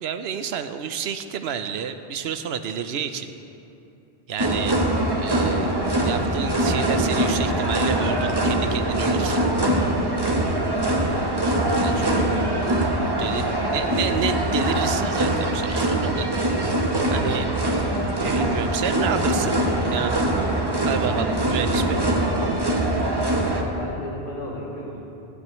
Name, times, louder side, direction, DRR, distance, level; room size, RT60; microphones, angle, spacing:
voice 1, 0.0-3.3 4.3-4.8 5.2-9.4 11.8-12.3 13.2-13.4 13.7-16.3 17.1-17.5 18.2-19.6 19.9-20.2 20.8-22.0, right 7 dB, 90° right, 9 dB, 0.9 m, -30 dB
sound 1, 4.4-23.6, right 1 dB, 25° right, 0.9 m, -23 dB
voice 2, 11.7-14.1 23.5-25.0, equal, 50° left, -11 dB, 2.3 m, -34 dB
16.0 x 12.0 x 3.1 m, 2.8 s
omnidirectional pair, 1.0 m